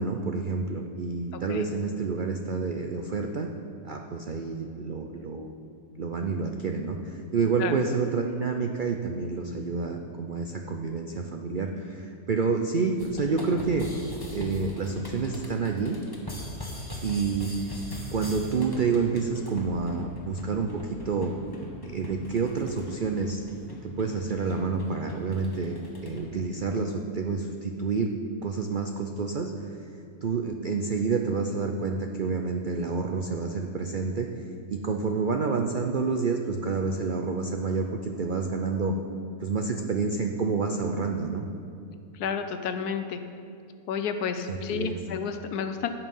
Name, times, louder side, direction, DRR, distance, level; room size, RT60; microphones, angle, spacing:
voice 1, 0.0-3.5 3.8-5.5 6.0-13.9 14.3-16.0 17.0-17.5 18.1-21.3 21.8-23.4 23.8-28.1 28.4-29.8 30.2-34.3 34.7-38.9 39.4-41.4 44.5-45.0, right 4 dB, 70° right, 3 dB, 0.4 m, -28 dB
sound 1, 13.0-26.3, left 1 dB, 15° left, 1.2 m, -40 dB
voice 2, 42.1-43.2 43.9-45.9, left 6 dB, 80° left, 8 dB, 1.2 m, -31 dB
16.0 x 5.6 x 5.4 m, 2.4 s
omnidirectional pair, 1.7 m